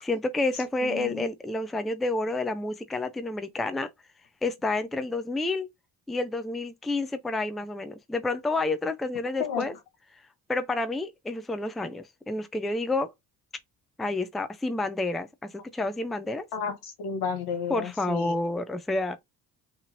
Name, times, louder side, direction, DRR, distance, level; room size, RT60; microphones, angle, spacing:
voice 1, 0.0-3.9 4.4-5.7 6.1-9.7 10.5-13.1 14.0-16.5 17.7-19.2, left 2 dB, ahead, 0.3 m, -29 dB
voice 2, 0.8-1.3 9.4-9.7 16.5-18.4, left 7 dB, 85° left, 1.0 m, -32 dB
2.9 x 2.8 x 2.6 m
cardioid pair, 75°, 38 cm